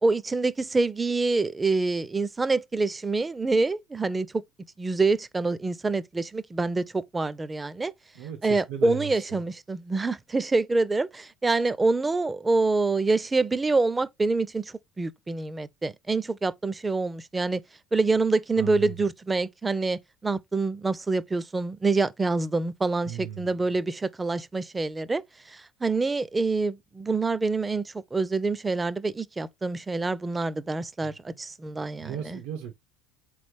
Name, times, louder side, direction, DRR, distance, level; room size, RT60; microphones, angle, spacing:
voice 1, 0.0-4.4 4.8-7.9 8.4-17.6 17.9-25.2 25.5-32.4, right 3 dB, 20° right, 0.4 m, -26 dB
voice 2, 8.1-9.4 18.6-19.1 23.0-23.5 31.0-31.1 32.0-32.7, right 10 dB, 80° right, 0.8 m, -36 dB
3.8 x 3.1 x 3.3 m
supercardioid pair, 85°, 0 cm